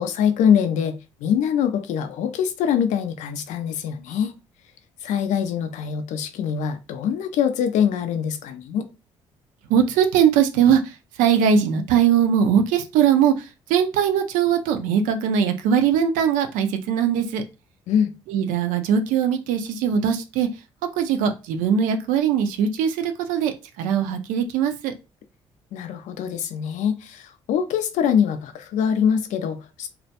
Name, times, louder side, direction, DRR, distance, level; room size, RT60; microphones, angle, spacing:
voice 1, 0.0-4.3 5.0-8.9 17.9-18.1 25.7-29.9, left 8 dB, 65° left, 0.4 m, -23 dB
voice 2, 9.7-10.9 11.2-17.4 18.3-20.5 21.0-24.9, right 8 dB, 75° right, 0.4 m, -20 dB
2.2 x 2.1 x 2.8 m
hypercardioid pair, 50°, 14 cm